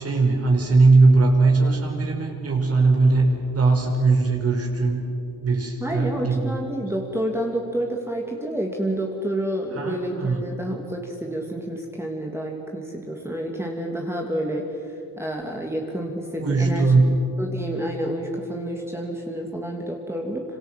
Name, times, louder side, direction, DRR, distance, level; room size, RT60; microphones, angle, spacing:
voice 1, 0.0-5.0 5.4-6.6 9.7-10.4 16.4-17.2, right 3 dB, 45° right, 1 dB, 5.3 m, -19 dB
voice 2, 5.8-16.9 17.4-20.4, right 1 dB, 5° right, 0 dB, 3.0 m, -29 dB
26.5 x 26.5 x 7.8 m, 2.8 s
cardioid pair, 100°, 35 cm